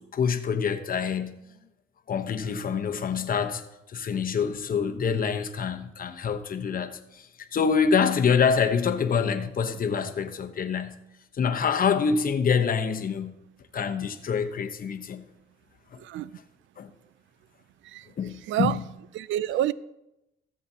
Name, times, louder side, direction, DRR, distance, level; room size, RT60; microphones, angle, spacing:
voice 1, 0.0-1.4 2.1-3.6 3.9-11.0 11.3-13.4 13.7-15.3 15.9-16.0 16.8-16.9 18.2-18.8, left 6 dB, 45° left, 1.0 m, -26 dB
voice 2, 16.0-16.4 17.8-18.1 18.5-18.8 19.1-19.7, right 13 dB, 75° right, 0.4 m, -28 dB
19.5 x 7.4 x 2.8 m
cardioid pair, 90°, 20 cm